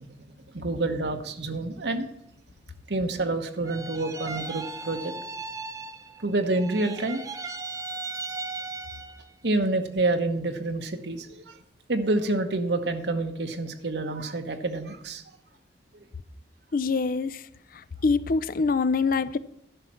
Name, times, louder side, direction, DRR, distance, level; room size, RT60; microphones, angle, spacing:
voice 1, 0.5-2.1 2.9-5.1 6.2-7.2 9.4-11.5 11.9-15.2, right 2 dB, 70° right, 1.1 m, -28 dB
sound 1, 3.6-6.3 6.5-9.3, right 3 dB, 20° right, 0.7 m, -37 dB
voice 2, 16.7-17.4 17.7-19.4, left 4 dB, 55° left, 0.5 m, -25 dB
11.5 x 5.7 x 7.6 m
head